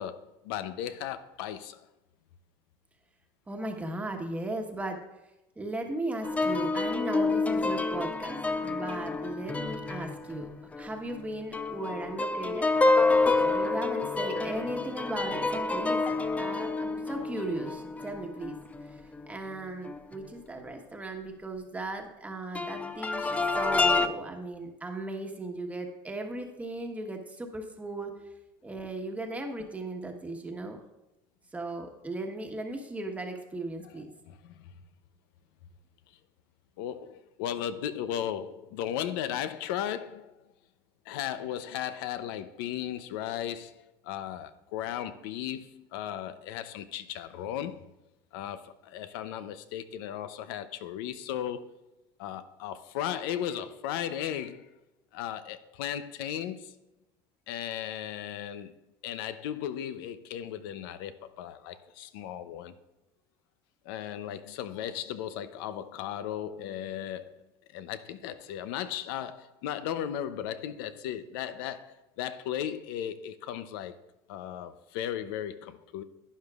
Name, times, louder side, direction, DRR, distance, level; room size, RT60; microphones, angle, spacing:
voice 1, 0.0-1.8 34.3-34.7 36.8-40.4 41.1-47.9 48.3-51.7 52.2-54.7 55.1-56.7 57.5-58.7 59.0-62.8 63.8-67.3 67.7-74.0 74.3-76.0, left 10 dB, 85° left, 0.6 m, -36 dB
voice 2, 3.5-5.0 5.6-10.5 10.8-12.7 13.4-16.0 16.4-18.6 18.8-19.0 19.3-28.1 28.6-30.8 31.5-34.1, right 2 dB, 10° right, 1.2 m, -37 dB
sound 1, 6.2-11.2 11.5-19.3 19.9-20.0 22.6-24.1, left 3 dB, 10° left, 0.4 m, -28 dB
12.0 x 9.5 x 2.4 m
supercardioid pair, 120°, 11 cm